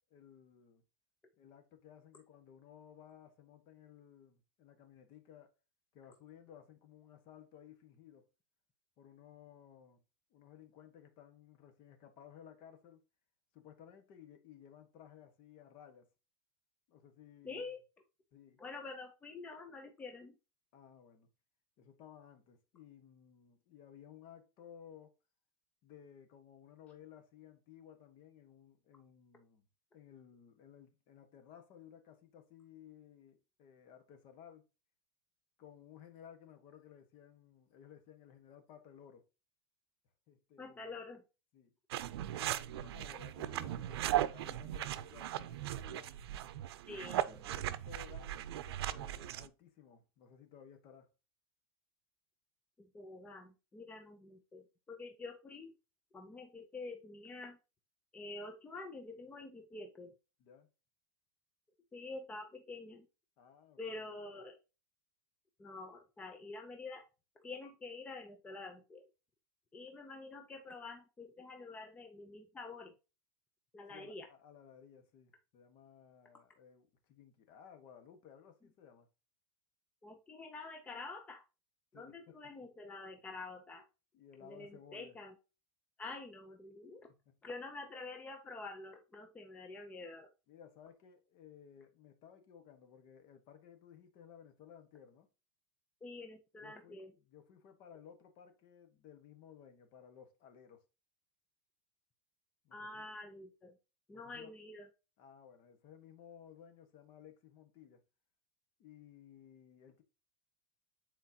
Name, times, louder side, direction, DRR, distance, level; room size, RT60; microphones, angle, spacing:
voice 1, 0.1-0.8 1.4-5.5 5.9-8.3 9.0-10.0 10.3-13.0 13.5-16.0 16.9-17.7 18.3-18.6 20.7-21.3 21.8-25.1 25.8-29.7 29.9-34.6 35.6-39.2 40.3-41.1 41.5-41.7 42.3-46.2 47.0-51.1 60.4-60.7 63.4-64.1 73.9-79.1 81.9-82.5 84.1-85.2 87.1-87.4 90.5-95.3 96.6-100.8 102.6-103.1 104.1-104.5 105.2-108.0 108.8-110.0, left 9 dB, 40° left, 1.4 m, -57 dB
voice 2, 17.4-17.8 18.6-20.4 40.6-41.2 46.9-47.5 52.8-55.7 56.1-57.6 58.1-60.1 61.9-63.1 63.8-64.6 65.6-67.1 67.4-69.0 69.7-72.9 73.7-74.3 80.0-81.4 81.9-83.8 84.4-85.3 86.0-87.1 87.4-90.3 96.0-97.1 102.7-103.8 104.1-104.9, left 3 dB, 10° left, 0.6 m, -47 dB
sound 1, 41.9-49.5, right 13 dB, 90° right, 0.6 m, -38 dB
8.4 x 4.4 x 2.8 m
supercardioid pair, 160°, 13 cm